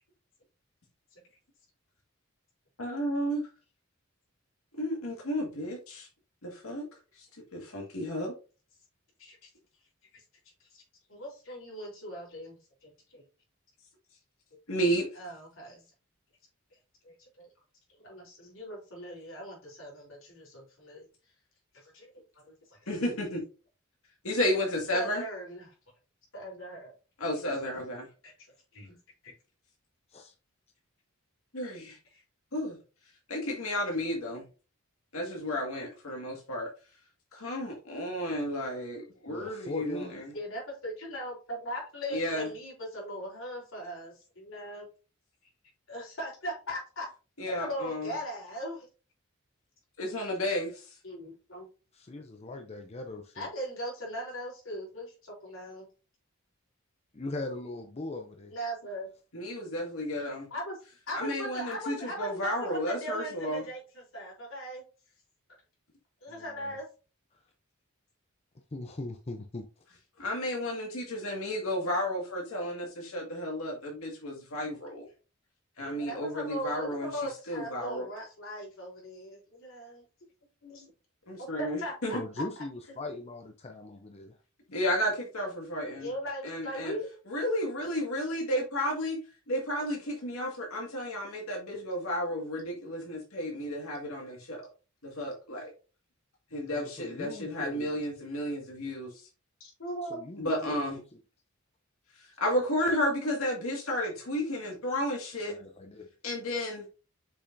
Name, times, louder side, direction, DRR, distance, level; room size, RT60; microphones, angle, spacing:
voice 1, 2.8-3.4 4.8-6.1 6.4-6.8 7.5-8.3 14.7-15.1 22.9-23.4 24.2-25.2 27.2-28.1 31.5-32.0 32.5-32.8 33.3-34.4 35.1-36.7 37.3-40.1 42.1-42.5 47.4-48.1 50.0-50.9 59.3-60.5 61.1-63.6 70.2-75.1 75.8-77.1 77.5-78.1 81.3-82.2 84.7-86.1 86.4-86.9 87.3-89.2 89.5-94.6 95.0-95.7 96.5-99.2 100.4-101.0 102.2-105.6 106.2-106.8, equal, 80° left, 0 dB, 2.0 m, -32 dB
voice 2, 11.1-13.2 15.2-15.8 17.0-17.5 18.0-21.1 21.7-22.1 22.4-22.8 24.9-25.7 26.3-26.9 27.4-27.5 28.2-28.3 28.7-29.0 29.2-29.3 32.1-32.2 40.3-44.9 45.9-47.1 47.5-48.9 51.0-51.7 53.4-55.9 58.5-59.1 60.5-60.8 61.1-64.8 66.2-66.9 75.8-80.0 80.6-80.9 81.4-82.2 86.0-87.1 99.6-100.2, equal, 65° left, -2 dB, 3.9 m, -39 dB
voice 3, 39.3-40.2 51.9-53.5 57.1-58.5 66.3-66.8 68.7-69.7 82.1-84.4 84.7-84.8 96.7-98.0 100.0-101.2 105.4-106.1, left 2 dB, 30° left, 5 dB, 0.6 m, -40 dB
6.9 x 5.5 x 2.7 m, 0.33 s
head